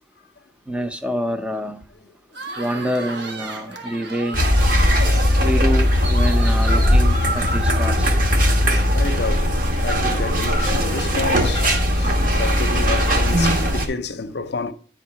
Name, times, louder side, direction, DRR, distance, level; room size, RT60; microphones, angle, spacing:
voice 1, 0.7-1.8 2.6-4.4 5.4-8.2, equal, 5° right, 0.6 m, -26 dB
sound 1, 2.3-9.2, right 3 dB, 70° right, 1.3 m, -36 dB
voice 2, 3.7-4.1 8.9-14.7, left 4 dB, 60° left, 0.6 m, -29 dB
sound 2, 4.3-13.9, equal, 45° right, 1.3 m, -18 dB
9.6 x 3.8 x 5.6 m
head